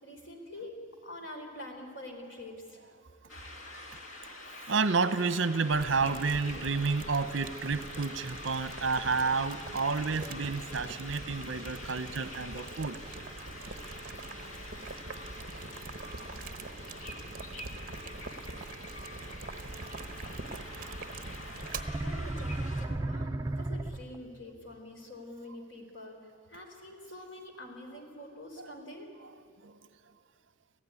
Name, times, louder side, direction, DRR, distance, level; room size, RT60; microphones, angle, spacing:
voice 1, 0.0-2.8 3.2-3.6 3.9-4.3 22.0-26.2 26.5-29.1, left 1 dB, 65° left, 3 dB, 4.0 m, -46 dB
sound 1, 3.3-22.9, left 1 dB, 80° left, 2.1 m, -46 dB
voice 2, 4.7-13.0 20.8-21.0 29.6-29.7, right 4 dB, 65° right, 13 dB, 0.9 m, -30 dB
Boiling, 5.7-21.8, right 3 dB, 45° right, 1.0 m, -43 dB
sound 2, 21.6-24.4, right 2 dB, 15° right, 0.5 m, -34 dB
26.5 x 15.5 x 9.7 m, 2.3 s
head